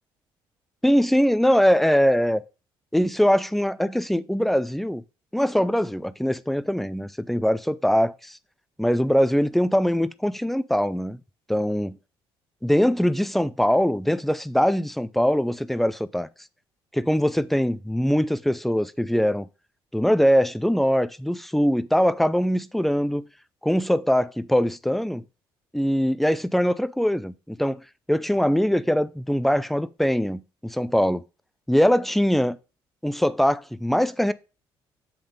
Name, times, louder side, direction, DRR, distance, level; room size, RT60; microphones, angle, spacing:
voice 1, 0.8-2.4 2.9-5.0 5.3-8.4 8.8-11.2 11.5-12.0 12.6-16.3 16.9-19.5 19.9-23.3 23.6-25.2 25.7-27.8 28.1-31.2 31.7-32.6 33.0-34.3, equal, ahead, 0.5 m, -22 dB
8.0 x 3.6 x 5.2 m
supercardioid pair, 80°, 10 cm